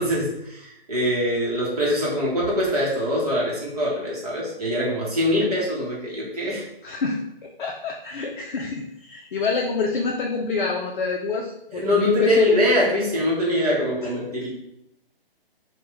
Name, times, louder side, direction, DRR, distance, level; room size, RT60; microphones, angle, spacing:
voice 1, 0.0-6.6 11.7-14.5, equal, 40° right, -4 dB, 0.8 m, -23 dB
voice 2, 6.8-12.6, left 4 dB, 60° left, 1 dB, 0.4 m, -26 dB
2.9 x 2.1 x 3.6 m, 0.81 s
hypercardioid pair, 160°, 29 cm